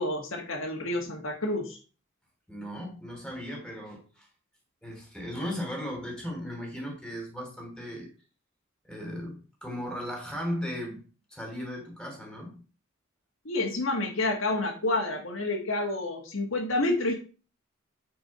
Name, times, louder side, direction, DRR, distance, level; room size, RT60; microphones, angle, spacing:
voice 1, 0.0-1.8 13.4-17.1, left 2 dB, 75° left, 0 dB, 1.7 m, -29 dB
voice 2, 2.5-4.3 4.8-8.1 8.8-11.0 11.3-12.6, equal, 5° left, 0 dB, 3.1 m, -36 dB
8.9 x 4.8 x 4.3 m, 0.35 s
head